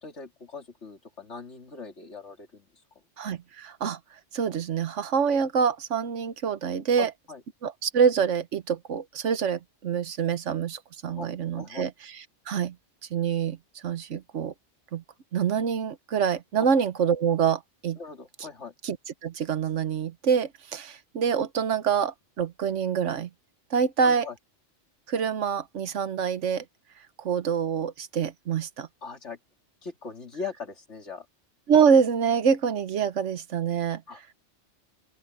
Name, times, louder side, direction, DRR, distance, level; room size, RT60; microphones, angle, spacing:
voice 1, 0.0-2.7 7.0-7.4 11.2-11.3 11.6-11.9 18.0-18.7 24.0-24.4 29.0-29.4 29.8-31.3 34.1-34.2, left 5 dB, 70° left, 3.0 m, -40 dB
voice 2, 3.2-4.0 4.3-7.1 7.6-11.9 12.5-12.7 13.1-14.5 14.9-15.0 15.3-18.0 18.8-19.0 19.2-23.3 23.7-24.3 25.1-26.6 27.2-28.9 31.7-34.0, right 7 dB, 80° right, 1.3 m, -26 dB
open air
omnidirectional pair, 1.2 m